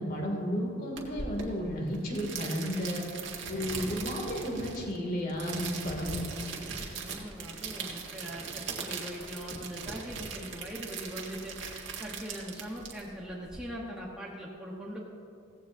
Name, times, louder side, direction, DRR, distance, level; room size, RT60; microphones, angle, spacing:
voice 1, 0.0-3.0 3.5-6.2, equal, 45° left, 0 dB, 2.6 m, -33 dB
sound 1, 1.0-13.6, right 5 dB, 60° right, 1.8 m, -40 dB
voice 2, 6.6-15.1, equal, 5° right, -5 dB, 1.1 m, -41 dB
17.0 x 15.0 x 2.7 m, 2.5 s
head